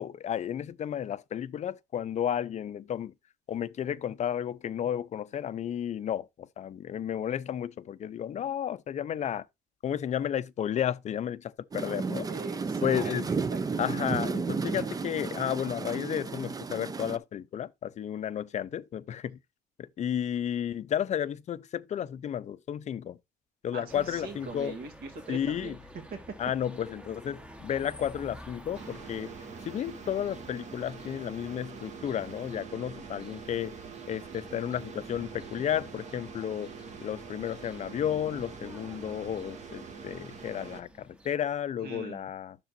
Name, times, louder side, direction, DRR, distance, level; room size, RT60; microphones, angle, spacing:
voice 1, 0.0-3.1 3.5-9.5 9.8-12.3 12.8-13.3 13.8-19.4 19.8-23.2 23.6-24.7 25.3-25.7 26.4-29.3 29.7-33.7 34.1-36.7 37.0-42.6, left 9 dB, 45° left, 0.5 m, -32 dB
sound 1, 11.7-17.2, right 4 dB, 20° right, 0.5 m, -33 dB
voice 2, 12.3-13.6 23.7-25.8 26.1-26.2 41.8-42.3, right 4 dB, 65° right, 2.4 m, -41 dB
sound 2, 23.9-41.4, equal, 5° right, 0.9 m, -52 dB
sound 3, 28.7-40.8, right 5 dB, 45° right, 1.5 m, -44 dB
10.0 x 6.8 x 2.5 m
cardioid pair, 110°, 17 cm